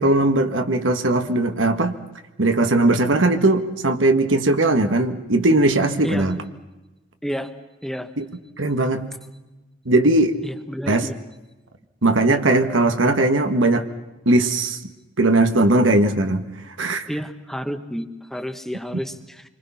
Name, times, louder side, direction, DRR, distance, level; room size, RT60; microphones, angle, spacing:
voice 1, 0.0-2.0 2.4-6.4 8.2-8.3 8.6-9.1 9.8-10.3 10.9-11.1 12.0-13.8 14.2-14.8 15.2-16.4 16.8-17.0, right 2 dB, 85° right, 6 dB, 1.7 m, -19 dB
voice 2, 10.4-11.1 17.1-19.4, equal, ahead, 8 dB, 1.3 m, -30 dB
27.5 x 24.5 x 5.9 m, 1.1 s
head